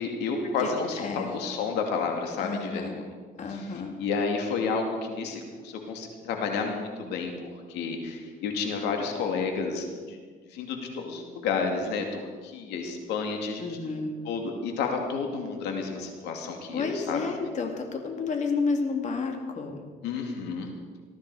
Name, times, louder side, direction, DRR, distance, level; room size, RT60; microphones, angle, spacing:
voice 1, 0.0-3.0 3.5-10.2 10.5-17.2 20.0-20.7, left 5 dB, 90° left, 3 dB, 2.4 m, -31 dB
voice 2, 1.0-1.3 2.4-3.0 3.4-3.9 13.6-14.1 16.7-19.8, left 4 dB, 45° left, 3 dB, 2.4 m, -31 dB
19.5 x 14.0 x 4.9 m, 1.6 s
cardioid pair, 110°, 17 cm